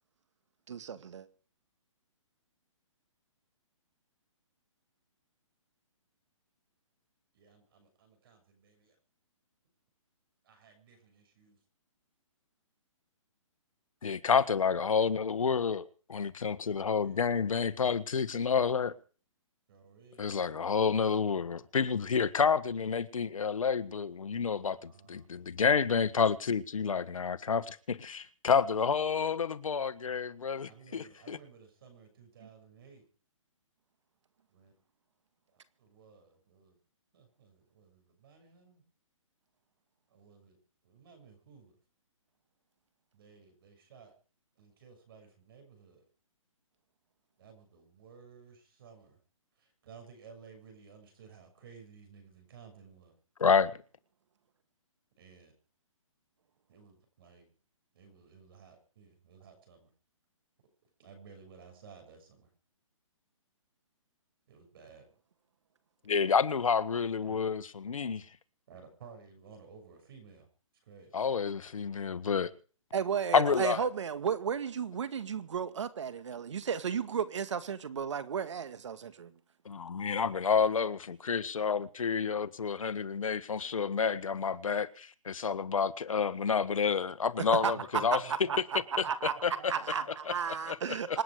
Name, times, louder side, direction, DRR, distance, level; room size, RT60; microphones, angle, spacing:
voice 1, 0.7-1.3 72.9-79.3 87.6-88.0 88.5-88.6 89.0-89.3 89.7-91.2, right 7 dB, 60° right, 2.1 m, -34 dB
voice 2, 7.3-8.9 10.4-11.6 17.0-17.8 19.7-20.3 24.5-25.3 30.7-33.0 34.5-34.7 35.5-36.8 37.1-38.8 40.1-40.6 40.8-41.7 43.1-44.1 44.6-46.0 47.4-49.2 49.6-53.2 55.2-55.5 56.7-57.5 57.9-59.9 61.0-62.5 64.5-65.1 67.2-67.4 68.7-70.5 70.8-71.2 87.7-90.1, right 6 dB, 45° right, 6.7 m, -55 dB
voice 3, 14.0-19.0 20.2-31.4 53.4-53.8 66.1-68.2 71.1-72.5 73.3-73.8 79.6-88.2 89.4-89.7 90.3-90.4 90.7-90.8 91.1-91.2, left 6 dB, 85° left, 1.5 m, -29 dB
26.5 x 9.5 x 4.8 m
hypercardioid pair, 165°, 17 cm